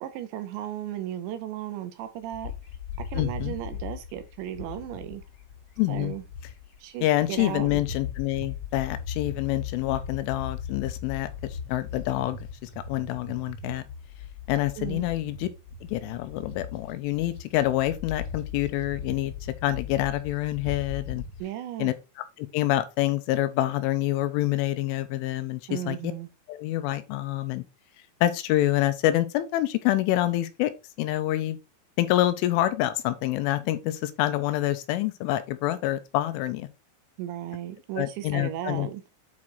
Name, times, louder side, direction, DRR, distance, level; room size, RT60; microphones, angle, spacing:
voice 1, 0.0-2.5 3.1-5.2 5.9-6.2 6.8-7.8 14.8-15.1 21.4-22.0 25.7-26.3 37.2-39.0, right 12 dB, 80° right, 2.7 m, -35 dB
Bird, 2.3-6.8 7.2-21.4, left 7 dB, 55° left, 2.6 m, -38 dB
voice 2, 3.2-3.5 5.8-6.1 7.0-11.3 11.7-13.8 14.5-15.5 15.9-19.3 19.6-21.2 21.8-21.9 22.4-26.1 26.5-27.6 28.2-30.7 31.0-31.6 32.0-36.7 38.0-38.9, left 15 dB, 80° left, 3.1 m, -27 dB
8.6 x 4.7 x 4.0 m
omnidirectional pair, 5.8 m